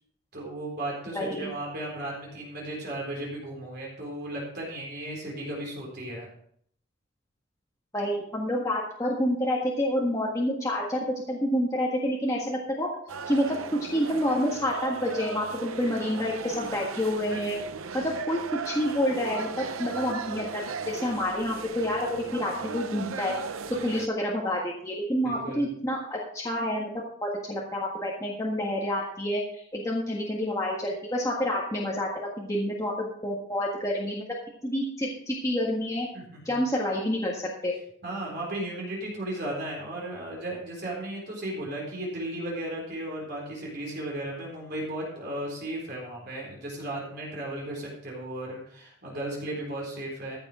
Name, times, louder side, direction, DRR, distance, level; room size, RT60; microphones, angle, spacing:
voice 1, 0.3-6.3 25.2-25.7 36.1-36.5 38.0-50.4, right 1 dB, 50° right, -3 dB, 4.1 m, -35 dB
voice 2, 1.1-1.5 7.9-12.9 13.3-13.6 13.9-17.6 17.9-18.4 18.6-20.6 20.9-23.3 23.8-34.2 34.6-36.1 36.4-37.7, left 1 dB, 15° left, -3 dB, 1.6 m, -28 dB
sound 1, 13.1-24.1, right 5 dB, 85° right, 0.7 m, -37 dB
15.0 x 7.2 x 4.9 m, 0.66 s
head